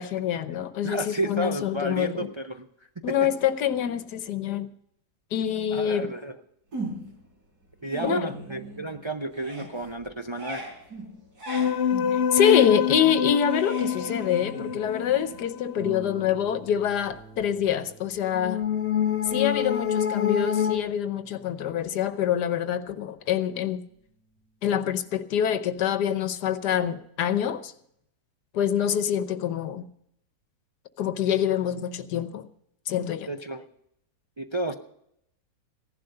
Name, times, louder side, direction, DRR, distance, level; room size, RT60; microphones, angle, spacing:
voice 1, 0.0-2.3 3.0-4.7 5.3-6.1 8.0-8.3 12.1-18.6 19.3-23.8 24.6-27.7 28.5-29.9 31.0-32.5 32.9-33.3, left 9 dB, 85° left, 1.4 m, -26 dB
voice 2, 0.8-2.7 3.1-3.2 5.7-6.4 7.8-10.7 33.3-33.7 34.4-34.7, right 1 dB, 45° right, 0.3 m, -31 dB
sound 1, 6.7-7.3 7.6-9.0 9.3-15.8, right 1 dB, 75° right, 5.1 m, -39 dB
sound 2, 11.5-16.0 18.3-20.8, left 8 dB, 50° left, 0.9 m, -26 dB
Harp, 15.8-24.9 25.8-25.9 26.3-26.4, right 1 dB, ahead, 3.0 m, -48 dB
16.0 x 11.5 x 5.4 m
omnidirectional pair, 1.7 m